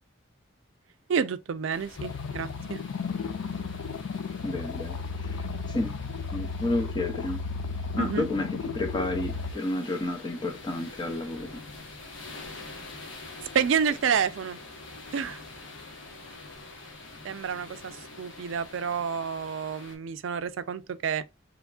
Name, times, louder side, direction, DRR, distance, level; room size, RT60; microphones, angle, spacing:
voice 1, 1.1-2.8 8.0-8.3 13.5-14.6 15.1-15.4 17.2-21.2, right 7 dB, 70° right, 0.4 m, -29 dB
sound 1, 1.7-20.0, left 3 dB, 70° left, 1.3 m, -46 dB
sound 2, 2.0-9.5, left 5 dB, 85° left, 0.4 m, -34 dB
voice 2, 4.4-5.9 6.3-7.4 8.0-11.6, left 2 dB, 20° left, 0.6 m, -31 dB
3.5 x 3.1 x 2.4 m
head